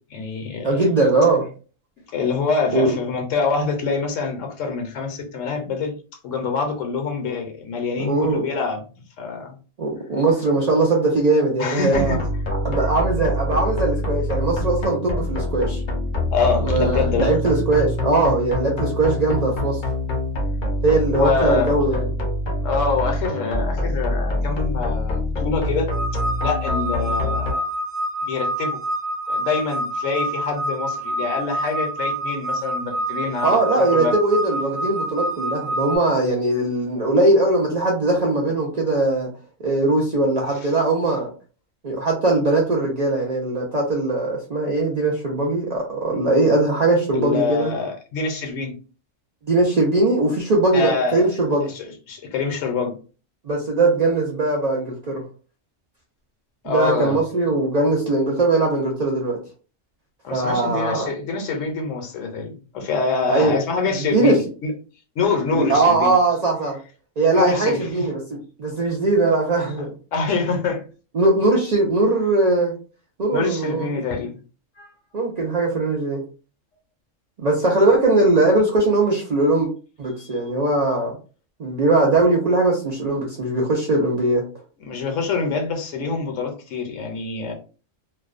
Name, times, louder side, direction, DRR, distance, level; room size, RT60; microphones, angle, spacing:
voice 1, 0.1-0.8 2.1-6.0 6.2-8.8 9.2-9.5 11.6-12.2 16.3-17.3 21.1-21.7 22.6-25.9 26.4-27.6 28.3-28.8 29.3-34.1 47.1-48.7 50.7-51.3 51.7-52.9 56.6-57.2 60.2-64.7 65.2-66.1 67.3-67.9 70.1-70.8 73.3-74.4 74.8-74.9 84.8-87.5, left 4 dB, 75° left, 4 dB, 1.0 m, -25 dB
voice 2, 0.6-1.5 2.7-3.0 8.0-8.4 9.8-12.2 12.6-15.8 16.6-19.8 20.8-22.1 33.4-39.3 39.6-41.3 41.8-47.7 49.5-51.7 53.5-55.2 56.7-59.4 60.3-61.1 63.3-63.5 64.0-64.4 65.5-66.8 67.2-69.9 71.1-72.7 73.2-74.0 75.1-76.2 77.4-79.7 80.0-81.1 81.6-84.4, right 2 dB, 75° right, -2 dB, 0.3 m, -20 dB
sound 1, 11.9-27.5, left 1 dB, 50° left, 0.6 m, -25 dB
sound 2, 25.9-36.0, right 1 dB, 55° right, 1.0 m, -27 dB
2.5 x 2.1 x 2.4 m, 0.36 s
omnidirectional pair, 1.3 m